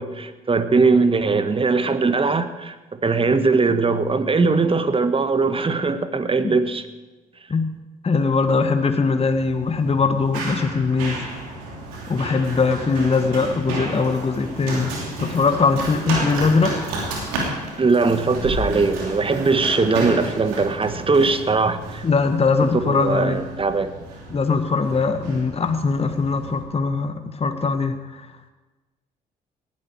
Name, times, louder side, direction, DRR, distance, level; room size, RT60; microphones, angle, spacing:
voice 1, 0.0-6.9 17.8-22.0 22.8-23.9, right 4 dB, 30° right, 11 dB, 1.4 m, -20 dB
voice 2, 8.0-11.2 12.1-16.8 22.0-23.4 24.3-28.3, left 4 dB, 30° left, 7 dB, 1.3 m, -21 dB
Run, 9.3-26.6, right 2 dB, 85° right, 3.0 m, -32 dB
18.5 x 12.0 x 4.7 m, 1.2 s
hypercardioid pair, 50°, 19 cm